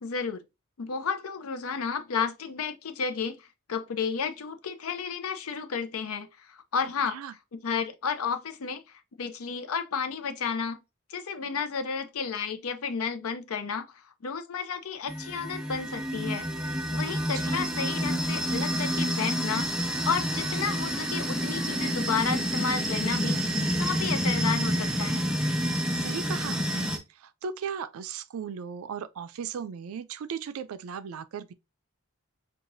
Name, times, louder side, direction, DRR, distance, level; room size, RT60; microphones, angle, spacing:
voice 1, 0.0-0.4 0.8-7.2 7.5-8.8 9.2-10.8 11.1-13.9 14.2-25.3, left 6 dB, 85° left, 0.5 m, -32 dB
sound 1, 15.1-27.0, equal, 5° right, 0.4 m, -29 dB
voice 2, 17.3-17.7 26.0-31.5, right 6 dB, 80° right, 0.4 m, -37 dB
4.7 x 2.4 x 2.6 m
head